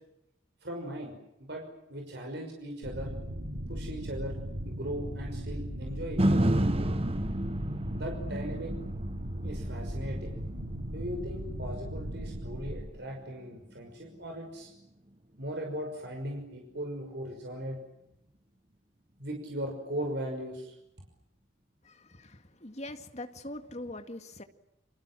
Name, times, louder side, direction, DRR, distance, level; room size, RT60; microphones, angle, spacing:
voice 1, 0.6-1.6 1.9-3.1 3.7-4.4 4.6-7.0 7.9-8.7 9.4-10.3 10.9-14.7 15.4-17.8 19.2-20.7, equal, 60° right, 2 dB, 5.9 m, -38 dB
sound 1, 2.8-12.8, equal, 80° right, 4.6 m, -37 dB
sound 2, 6.2-14.3 14.8-14.9, right 1 dB, 30° right, 1.3 m, -32 dB
voice 2, 21.9-24.4, left 1 dB, 35° left, 8 dB, 2.1 m, -42 dB
30.0 x 26.0 x 7.5 m, 0.85 s
head